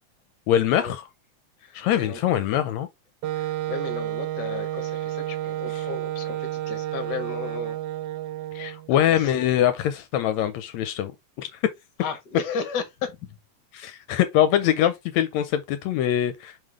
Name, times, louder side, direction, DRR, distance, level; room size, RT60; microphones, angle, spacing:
voice 1, 0.5-1.0 1.7-2.9 5.7-5.9 8.5-11.1 11.4-11.6 13.7-16.6, left 11 dB, 80° left, 1.8 m, -23 dB
voice 2, 1.6-2.2 3.3-7.8 8.9-9.4 12.0-13.4, left 5 dB, 45° left, 1.6 m, -34 dB
Wind instrument woodwind instrument, 3.2-8.9, right 14 dB, 90° right, 1.3 m, -31 dB
5.4 x 3.7 x 4.8 m
omnidirectional pair, 3.3 m